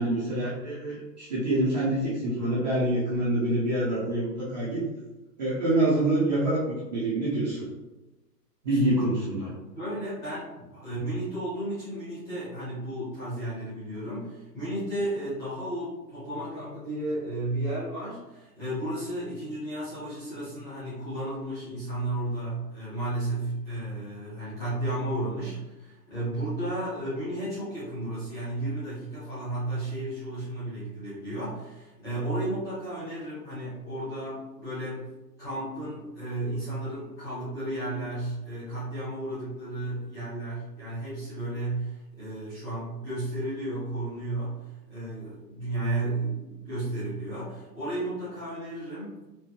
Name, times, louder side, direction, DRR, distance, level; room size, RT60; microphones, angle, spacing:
voice 1, 0.0-4.8 5.4-7.7 8.6-9.5, right 1 dB, 25° right, -9 dB, 0.5 m, -26 dB
voice 2, 9.7-35.1 35.4-44.6 44.9-49.2, right 1 dB, 5° left, -12 dB, 0.8 m, -33 dB
4.4 x 2.2 x 2.8 m, 1.0 s
hypercardioid pair, 160°, 49 cm